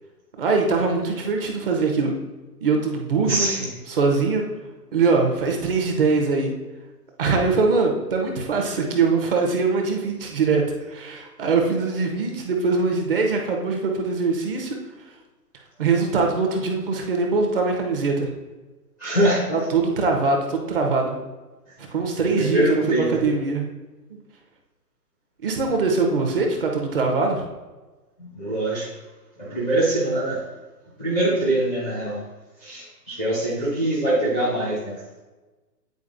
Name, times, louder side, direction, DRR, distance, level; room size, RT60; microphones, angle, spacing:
voice 1, 0.4-2.1 2.6-3.5 3.9-4.4 4.9-6.5 7.2-14.8 15.8-18.3 19.5-21.2 21.8-22.8 23.2-23.7 25.4-27.5, right 4 dB, 35° right, 2 dB, 1.0 m, -22 dB
voice 2, 3.3-3.7 19.0-19.7 22.3-23.1 28.2-28.9 29.4-30.4 31.0-32.2 32.6-35.0, right 1 dB, 10° right, -7 dB, 0.5 m, -23 dB
9.4 x 4.4 x 2.6 m, 1.2 s
figure-of-eight pair, 140°, 49 cm